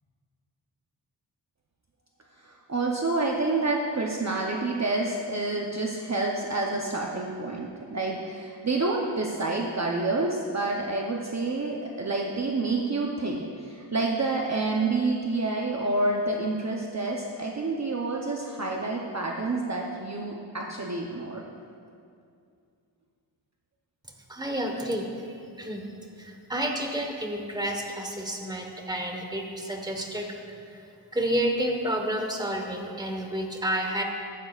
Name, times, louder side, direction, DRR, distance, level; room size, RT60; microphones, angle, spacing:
voice 1, 2.4-21.4, right 3 dB, 35° right, -1 dB, 0.8 m, -28 dB
voice 2, 24.3-25.8 26.2-30.3 30.7-30.8 31.1-34.0, right 1 dB, 10° right, 2 dB, 1.2 m, -30 dB
15.0 x 9.6 x 2.4 m, 2.4 s
wide cardioid pair, 85°, 45 cm